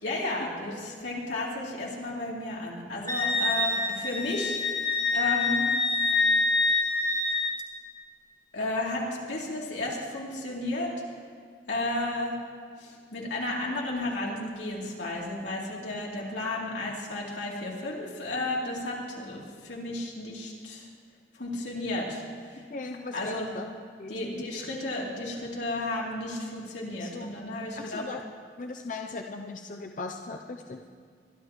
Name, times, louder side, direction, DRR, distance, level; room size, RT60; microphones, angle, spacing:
voice 1, 0.0-4.6 5.1-5.6 8.5-10.9 11.7-12.3 12.8-20.9 21.3-22.6 23.1-23.5 24.1-28.0, left 2 dB, 90° left, -4 dB, 3.2 m, -33 dB
Wind instrument woodwind instrument, 3.1-7.5, left 3 dB, 20° left, 1.2 m, -26 dB
voice 2, 22.7-23.7 24.0-24.5 27.0-27.3 27.8-28.2 28.6-30.8, left 3 dB, 45° left, 3 dB, 0.6 m, -38 dB
23.5 x 11.5 x 3.1 m, 2.1 s
head